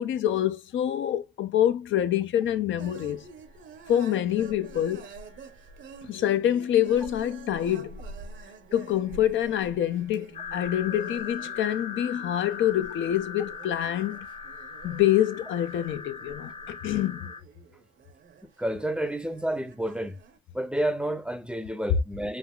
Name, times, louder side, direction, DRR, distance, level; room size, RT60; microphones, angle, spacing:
voice 1, 0.0-3.2 3.9-5.1 6.0-8.0 8.7-14.3 14.8-17.3, left 11 dB, 75° left, 0.4 m, -26 dB
sound 1, 2.8-20.4, right 4 dB, 70° right, 0.8 m, -47 dB
sound 2, 10.3-17.4, left 6 dB, 40° left, 0.8 m, -39 dB
voice 2, 18.6-20.2 20.5-22.4, right 1 dB, 5° right, 0.5 m, -30 dB
3.3 x 2.4 x 2.2 m
cardioid pair, 65°, 20 cm